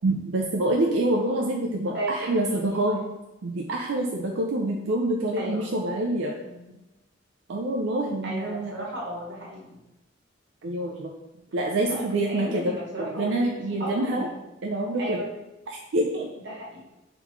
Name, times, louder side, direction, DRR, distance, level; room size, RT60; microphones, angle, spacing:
voice 1, 0.0-3.0 3.4-6.3 7.5-8.7 10.6-11.1 11.5-12.8 13.2-14.3 14.6-15.2 15.9-16.3, right 1 dB, 80° right, 0 dB, 0.5 m, -26 dB
voice 2, 1.9-3.0 5.4-5.7 6.4-6.8 8.2-9.8 11.8-14.4 15.0-15.3 16.4-16.8, right 1 dB, 65° right, -3 dB, 1.1 m, -35 dB
3.7 x 3.6 x 3.1 m, 0.98 s
head